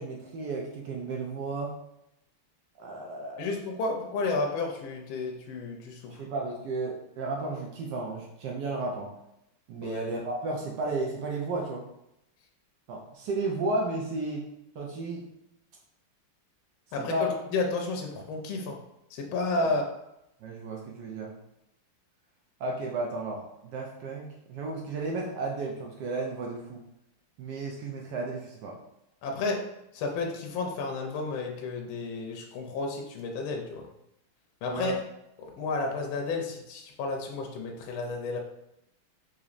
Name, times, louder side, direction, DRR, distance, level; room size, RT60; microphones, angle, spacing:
voice 1, 0.0-1.7 2.8-3.5 6.2-9.1 9.7-11.8 12.9-14.4 14.7-15.2 17.0-17.3 20.4-21.3 22.6-26.8 27.4-28.8 34.7-34.9, right 3 dB, 75° right, -1 dB, 1.0 m, -33 dB
voice 2, 3.4-6.2 9.8-10.0 16.9-18.8 19.1-19.8 29.2-33.9 34.6-35.0 35.4-38.4, left 3 dB, 75° left, 1 dB, 1.3 m, -32 dB
3.9 x 3.1 x 2.4 m, 0.83 s
omnidirectional pair, 2.3 m